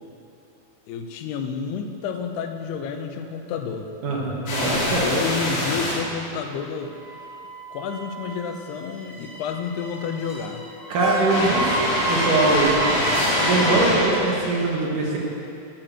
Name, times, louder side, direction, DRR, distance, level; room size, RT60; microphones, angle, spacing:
voice 1, 0.9-3.9 4.8-6.9 7.7-10.6, left 6 dB, 90° left, 6 dB, 2.9 m, -30 dB
voice 2, 4.0-5.0 10.9-12.8 13.4-15.2, right 3 dB, 60° right, -3 dB, 3.0 m, -22 dB
sound 1, 4.5-5.9 11.3-14.0, left 1 dB, 55° left, 4.0 m, -24 dB
sound 2, 6.9-14.6, right 1 dB, 40° right, 3.3 m, -31 dB
10.5 x 8.8 x 7.8 m, 2.7 s
omnidirectional pair, 4.5 m